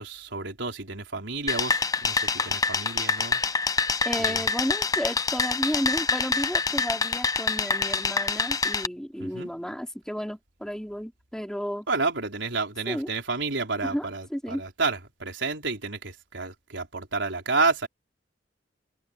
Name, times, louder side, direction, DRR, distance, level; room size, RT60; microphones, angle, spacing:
voice 1, 0.0-3.4 4.2-4.5 9.2-9.5 11.9-17.9, right 3 dB, 75° right, 4.2 m, -30 dB
sound 1, 1.5-8.9, left 4 dB, 20° left, 0.6 m, -26 dB
voice 2, 4.0-11.9 12.9-13.1 13.8-14.6, equal, 5° left, 4.9 m, -32 dB
head